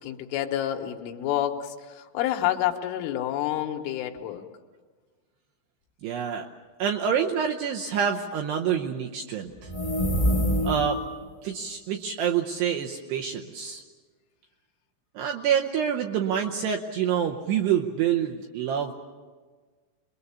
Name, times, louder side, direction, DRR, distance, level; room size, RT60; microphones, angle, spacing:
voice 1, 0.0-4.4, left 12 dB, 80° left, 4 dB, 3.6 m, -28 dB
voice 2, 6.0-6.5 6.8-9.7 10.6-11.0 11.4-13.8 15.2-18.9, right 8 dB, 80° right, 2 dB, 2.5 m, -27 dB
sound 1, 9.6-11.1, equal, 25° left, 0.8 m, -25 dB
27.0 x 22.0 x 7.1 m, 1.4 s
omnidirectional pair, 5.9 m